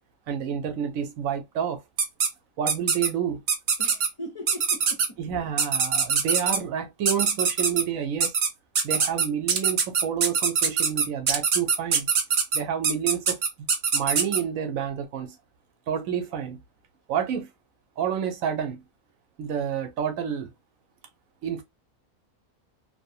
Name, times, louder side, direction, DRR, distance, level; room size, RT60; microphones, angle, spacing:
voice 1, 0.3-1.8 2.6-3.4 5.2-8.3 8.8-12.1 12.5-13.4 13.9-15.4 15.9-16.6 17.1-17.5 18.0-18.8 19.4-20.5 21.4-21.6, right 8 dB, 85° right, 1.1 m, -29 dB
sound 1, 2.0-2.3 2.7-3.1 3.5-4.1 4.5-5.1 5.6-6.6 7.1-7.8 8.2-8.5 8.7-14.4, right 6 dB, 60° right, 0.5 m, -23 dB
voice 2, 3.8-5.0, equal, 30° left, 0.6 m, -39 dB
2.9 x 2.0 x 2.6 m
omnidirectional pair, 1.4 m